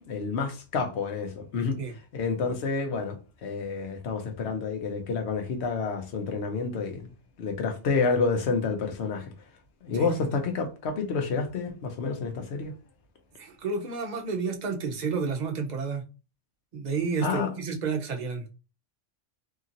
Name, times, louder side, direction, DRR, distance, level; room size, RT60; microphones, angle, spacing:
voice 1, 0.0-1.8 2.1-7.1 7.4-9.3 9.8-12.7 17.2-17.5, left 4 dB, 65° left, 1.0 m, -29 dB
voice 2, 9.9-10.3 13.4-16.1 16.7-18.5, right 5 dB, 50° right, 0.6 m, -31 dB
2.8 x 2.8 x 2.5 m
omnidirectional pair, 1.2 m